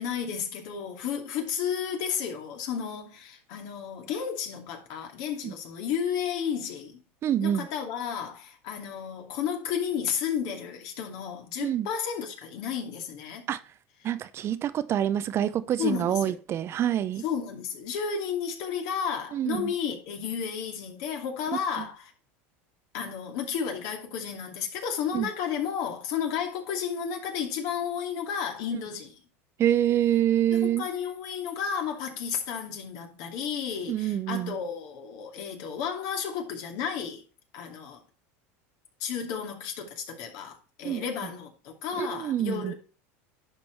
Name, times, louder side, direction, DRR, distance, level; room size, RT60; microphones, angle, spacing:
voice 1, 0.0-7.0 7.4-13.5 15.8-16.4 17.2-22.1 22.9-29.2 30.5-37.2 37.5-38.0 39.0-42.7, left 7 dB, 65° left, 2.6 m, -32 dB
voice 2, 7.2-7.7 11.6-11.9 13.5-13.6 14.0-17.2 19.3-19.7 21.8-21.9 25.1-25.3 29.6-30.8 33.9-34.6 40.8-41.0 42.0-42.7, right 11 dB, 40° right, 0.6 m, -26 dB
10.5 x 5.3 x 4.6 m
supercardioid pair, 120°, 7 cm